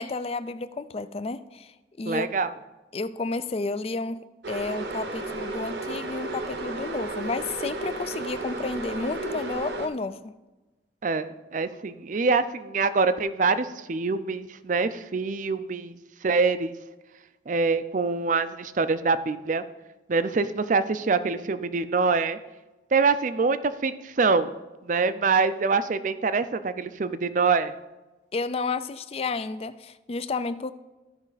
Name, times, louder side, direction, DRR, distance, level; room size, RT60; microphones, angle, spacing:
voice 1, 0.0-2.3 2.9-10.3 28.3-30.7, left 3 dB, 35° left, 13 dB, 0.4 m, -31 dB
voice 2, 2.0-2.5 11.0-16.0 16.2-16.7 17.5-19.6 20.1-22.4 22.9-24.5 24.8-27.7, right 4 dB, 45° right, 13 dB, 0.5 m, -25 dB
sound 1, 4.4-9.9, right 2 dB, 70° right, 0.9 m, -33 dB
14.0 x 5.3 x 4.0 m, 1.1 s
head